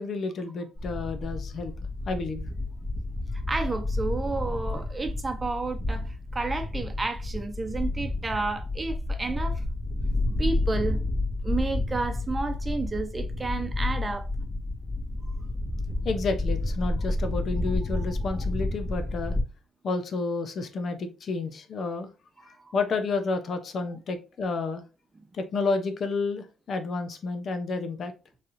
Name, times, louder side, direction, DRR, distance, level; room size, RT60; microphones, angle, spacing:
voice 1, 0.0-1.7 2.1-2.4 16.0-19.4 19.8-22.1 22.5-24.8 25.3-28.1, left 3 dB, 55° left, 0.7 m, -30 dB
sound 1, 0.8-19.4, left 2 dB, 25° left, 1.6 m, -30 dB
voice 2, 3.5-9.6 10.4-11.0 11.4-14.3 22.4-22.7, right 3 dB, 25° right, 0.8 m, -31 dB
4.2 x 3.3 x 2.5 m
cardioid pair, 90°, 0 cm